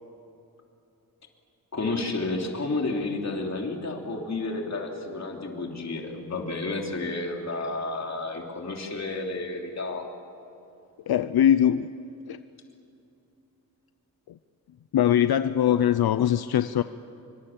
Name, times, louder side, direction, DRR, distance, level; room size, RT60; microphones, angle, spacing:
voice 1, 1.7-10.0 15.7-15.8, left 2 dB, 45° left, 1 dB, 3.2 m, -31 dB
voice 2, 11.1-11.9 12.3-12.4 14.9-16.8, left 10 dB, 85° left, 12 dB, 0.6 m, -21 dB
26.0 x 24.5 x 7.4 m, 2.9 s
wide cardioid pair, 145°, 36 cm